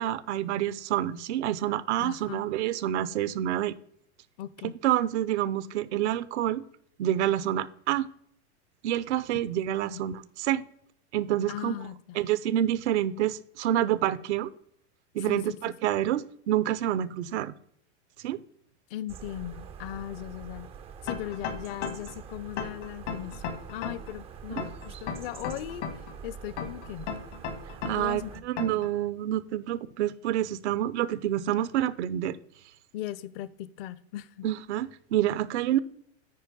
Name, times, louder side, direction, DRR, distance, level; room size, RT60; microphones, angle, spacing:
voice 1, 0.0-3.7 4.6-6.6 7.0-8.1 8.8-10.6 11.1-11.8 12.1-14.5 15.1-17.5 18.2-18.4 24.6-24.7 27.8-32.4 34.4-35.8, right 12 dB, 75° right, 0.7 m, -28 dB
voice 2, 2.0-2.4 4.4-4.8 9.8-10.0 11.5-12.2 15.3-15.7 18.9-20.7 21.0-25.8 26.2-27.1 28.0-28.4 32.9-34.5, left 13 dB, 55° left, 0.7 m, -38 dB
sound 1, 19.1-28.4, right 7 dB, 20° right, 0.3 m, -45 dB
sound 2, 21.1-22.1 22.6-24.1 24.6-26.1 26.6-28.1 28.6-28.9, left 6 dB, 80° left, 1.9 m, -35 dB
9.5 x 4.6 x 5.0 m
supercardioid pair, 130°, 34 cm